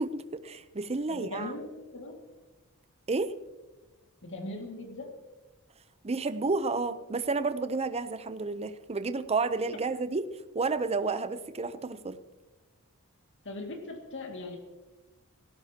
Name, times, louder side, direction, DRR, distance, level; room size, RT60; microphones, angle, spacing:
voice 1, 0.0-1.5 3.1-3.3 6.0-10.3 10.5-12.2, right 3 dB, 30° right, 12 dB, 0.7 m, -31 dB
voice 2, 1.1-1.7 1.9-2.2 4.2-5.1 13.4-14.6, left 2 dB, 60° left, 2 dB, 2.2 m, -39 dB
19.0 x 17.0 x 2.9 m, 1.2 s
head